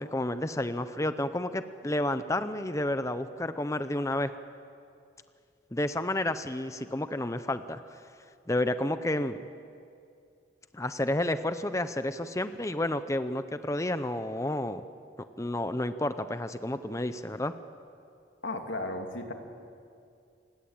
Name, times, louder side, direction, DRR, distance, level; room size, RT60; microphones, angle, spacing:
voice 1, 0.0-4.3 5.7-8.0 8.5-9.4 10.7-14.8 15.4-17.5, left 1 dB, 15° left, 11 dB, 0.6 m, -30 dB
voice 2, 18.4-19.3, left 2 dB, 90° left, 4 dB, 2.7 m, -34 dB
29.0 x 19.0 x 8.9 m, 2.5 s
head